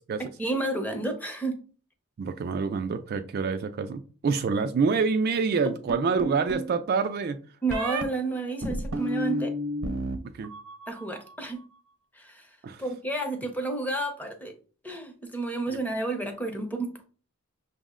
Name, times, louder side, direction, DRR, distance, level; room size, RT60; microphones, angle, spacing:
voice 1, 0.2-1.6 7.6-9.5 10.9-11.6 12.1-12.5 12.8-14.5 14.8-17.0, right 2 dB, 5° left, 0.7 m, -31 dB
voice 2, 2.2-7.4 10.3-10.5 12.6-12.8 15.7-15.8, right 5 dB, 45° right, 0.3 m, -27 dB
sound 1, 5.9-6.7 7.7-8.0 8.6-10.2 10.4-11.0, equal, 75° right, 0.8 m, -31 dB
6.0 x 2.0 x 3.6 m
head